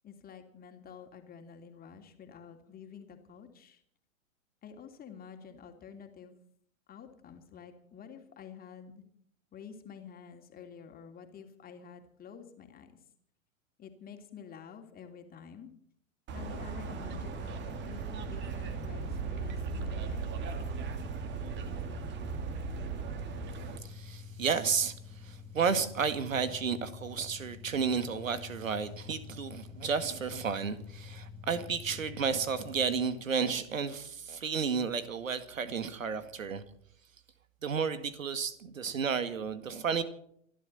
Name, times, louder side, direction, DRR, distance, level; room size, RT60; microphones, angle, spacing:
voice 1, 0.0-3.8 4.6-6.4 6.9-9.0 9.5-13.0 13.8-15.7 16.3-20.3, left 7 dB, 20° left, 2.9 m, -49 dB
sound 1, 16.3-23.8, right 5 dB, 25° right, 2.3 m, -37 dB
sound 2, 17.0-33.1, left 6 dB, 5° left, 2.1 m, -48 dB
voice 2, 23.8-36.6 37.6-40.0, right 6 dB, 75° right, 2.2 m, -32 dB
27.0 x 12.0 x 4.3 m
figure-of-eight pair, 105°, 40 cm